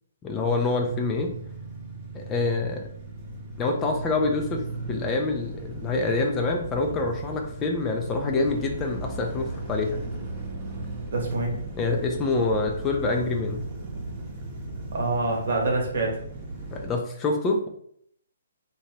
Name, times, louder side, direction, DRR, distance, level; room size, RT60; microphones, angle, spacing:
voice 1, 0.2-1.3 2.1-2.9 3.6-4.6 4.9-10.0 11.8-13.6 16.7-17.7, left 3 dB, 20° left, 2 dB, 0.4 m, -26 dB
sound 1, 0.8-16.9, right 2 dB, 30° right, 0.8 m, -36 dB
voice 2, 11.1-11.6 14.9-16.2, right 2 dB, 60° right, 0 dB, 0.9 m, -26 dB
2.8 x 2.2 x 3.1 m, 0.67 s
figure-of-eight pair, 135°, 0 cm